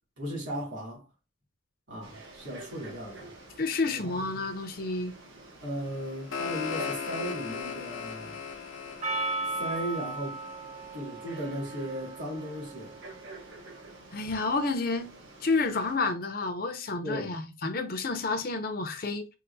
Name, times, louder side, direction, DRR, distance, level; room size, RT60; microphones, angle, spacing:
voice 1, 0.2-1.0 1.9-3.3 3.9-4.2 5.6-8.4 9.6-10.4 10.9-12.9 17.0-17.3, equal, 60° right, 2.4 m, -36 dB
Frog, 2.0-15.9, right 2 dB, 80° right, 1.2 m, -49 dB
voice 2, 3.6-5.2 14.1-15.1 15.4-19.3, left 3 dB, 45° left, 0.6 m, -30 dB
sound 1, 5.9-11.0, left 6 dB, 85° left, 0.7 m, -38 dB
Percussion, 9.0-13.6, right 2 dB, 35° right, 0.7 m, -36 dB
4.7 x 2.5 x 2.6 m
head